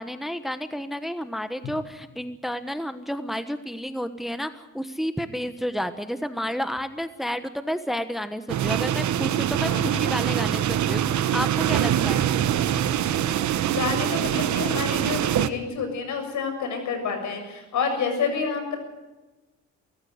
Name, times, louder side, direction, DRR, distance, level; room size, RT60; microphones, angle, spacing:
voice 1, 0.0-12.2, equal, ahead, 10 dB, 1.2 m, -31 dB
sound 1, 8.5-15.5, right 10 dB, 70° right, 1.1 m, -24 dB
voice 2, 9.6-10.0 13.8-18.8, left 5 dB, 75° left, 6 dB, 7.0 m, -29 dB
24.0 x 14.5 x 8.1 m, 1.1 s
cardioid pair, 90°, 30 cm